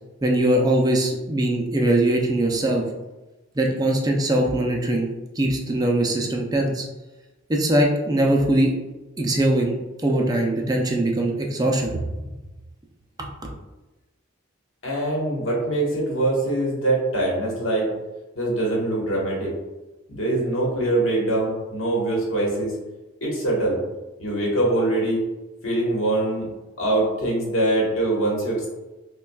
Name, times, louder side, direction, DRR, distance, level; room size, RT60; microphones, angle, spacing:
voice 1, 0.2-2.8 3.6-5.1 5.4-6.9 7.5-8.7 9.2-9.8 10.0-12.0 13.2-13.3, right 1 dB, 20° right, 0 dB, 0.4 m, -21 dB
voice 2, 14.8-17.9 18.3-19.5 20.1-22.7 23.2-23.8 24.2-25.2 25.6-26.5 26.8-28.7, right 2 dB, 75° left, -3 dB, 1.2 m, -23 dB
5.7 x 2.2 x 2.3 m, 1.1 s
head